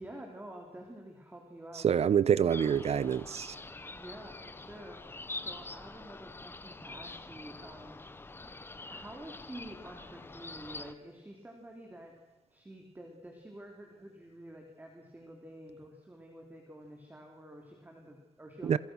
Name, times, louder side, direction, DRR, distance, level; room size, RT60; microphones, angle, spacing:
voice 1, 0.0-1.9 3.9-8.3 8.9-12.1 12.5-18.8, right 1 dB, 15° right, 3.4 m, -49 dB
voice 2, 1.8-3.5 18.6-18.8, right 8 dB, 65° right, 0.9 m, -26 dB
sound 1, 2.5-10.9, left 3 dB, 20° left, 1.0 m, -45 dB
28.0 x 23.5 x 6.3 m
wide cardioid pair, 155°, 12 cm